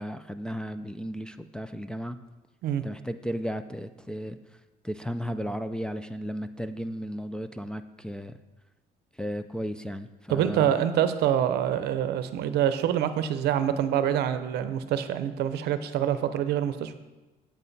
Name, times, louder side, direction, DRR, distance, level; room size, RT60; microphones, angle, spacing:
voice 1, 0.0-2.2 2.8-4.4 4.8-8.4 9.2-10.8, equal, 5° left, 7 dB, 0.3 m, -34 dB
voice 2, 10.3-17.0, right 10 dB, 75° right, 11 dB, 0.7 m, -26 dB
8.3 x 7.7 x 4.1 m, 1.1 s
cardioid pair, 110°, 17 cm